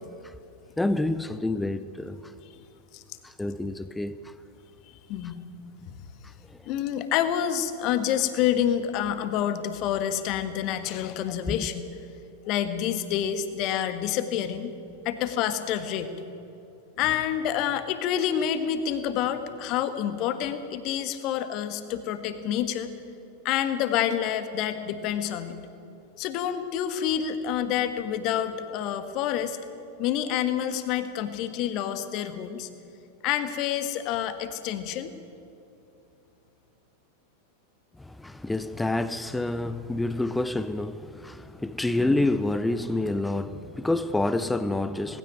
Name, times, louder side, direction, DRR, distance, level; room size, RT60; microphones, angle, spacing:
voice 1, 0.8-2.2 3.2-4.3 6.5-6.6 11.5-11.6 38.0-45.2, left 2 dB, 5° left, 0.7 m, -28 dB
voice 2, 5.1-5.4 5.9-6.0 6.7-11.9 12.5-14.7 15.0-16.1 17.0-22.9 23.4-25.6 26.2-29.6 30.0-32.7 33.2-35.1, left 10 dB, 40° left, 1.6 m, -28 dB
19.5 x 16.5 x 9.1 m
figure-of-eight pair, 90°, 0 cm